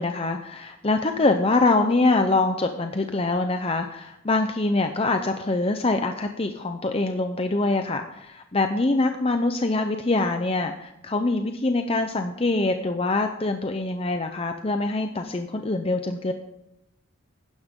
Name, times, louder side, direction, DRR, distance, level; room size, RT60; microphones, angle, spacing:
voice 1, 0.0-16.3, left 2 dB, 25° left, 6 dB, 0.7 m, -24 dB
16.0 x 11.5 x 3.8 m, 0.86 s
head